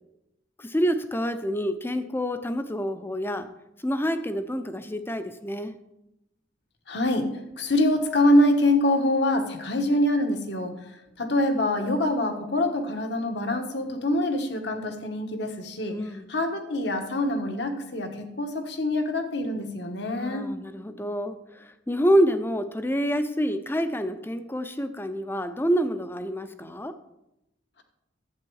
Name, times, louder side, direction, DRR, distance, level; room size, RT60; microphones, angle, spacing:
voice 1, 0.6-3.5 3.8-5.8 15.9-16.3 20.2-26.9, equal, 10° left, 10 dB, 0.6 m, -27 dB
voice 2, 6.9-7.3 7.5-10.7 11.2-16.0 16.3-20.4, left 1 dB, 65° left, 5 dB, 1.3 m, -25 dB
11.5 x 8.0 x 4.7 m, 0.88 s
head